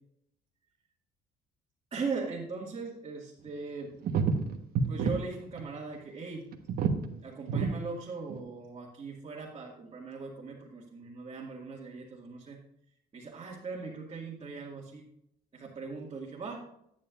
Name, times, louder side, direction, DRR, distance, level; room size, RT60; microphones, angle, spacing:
voice 1, 1.9-4.0 4.9-6.5 7.2-12.6 13.1-15.1 15.5-16.6, right 4 dB, 30° right, -4 dB, 2.0 m, -39 dB
sound 1, 3.5-3.6 4.0-5.1 5.4-5.6 5.9-6.0 6.5-7.1 7.5-7.7 8.3-8.4, right 5 dB, 65° right, 1.3 m, -28 dB
11.0 x 9.4 x 2.5 m, 0.74 s
cardioid pair, 110°, 17 cm